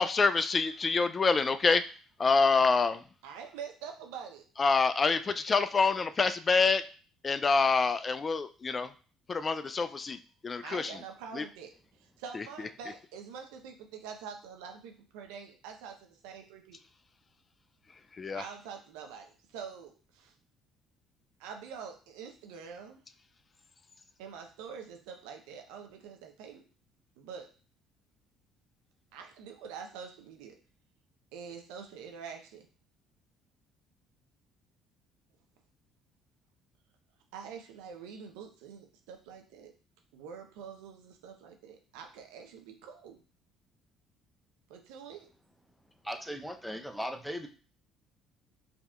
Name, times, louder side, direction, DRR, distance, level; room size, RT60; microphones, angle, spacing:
voice 1, 0.0-1.8 2.2-3.0 4.6-6.8 7.2-8.9 9.3-10.2 10.4-10.9 11.3-11.4 12.3-12.4 18.2-18.4, left 4 dB, 35° left, 11 dB, 0.3 m, -26 dB
voice 2, 3.2-4.4 10.6-11.7 12.0-16.8 18.3-20.3 21.4-23.0 24.2-26.6 27.2-27.5 29.1-30.5 31.3-32.7 37.3-39.7 40.1-43.2 44.7-45.3, right 6 dB, 80° right, 4 dB, 0.7 m, -45 dB
voice 3, 46.0-47.5, equal, ahead, 5 dB, 0.6 m, -37 dB
5.1 x 2.8 x 2.4 m, 0.38 s
hypercardioid pair, 65°, 0 cm